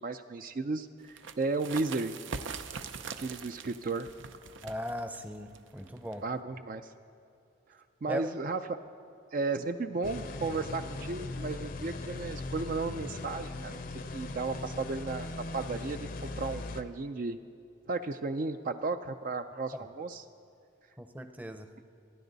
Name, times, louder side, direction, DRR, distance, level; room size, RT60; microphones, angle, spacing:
voice 1, 0.0-2.2 3.2-4.1 6.2-6.9 7.7-8.6 9.3-13.8 14.1-15.3 15.5-17.4 17.9-20.2, right 3 dB, 45° right, 8 dB, 0.4 m, -34 dB
sound 1, 1.0-6.4, right 5 dB, 85° right, 0.7 m, -43 dB
voice 2, 4.6-6.2 8.1-8.2 19.7-19.8 21.0-21.7, equal, 10° right, 7 dB, 0.6 m, -38 dB
sound 2, 10.0-16.8, left 2 dB, 45° left, 0.6 m, -39 dB
27.0 x 10.5 x 4.0 m, 2.6 s
head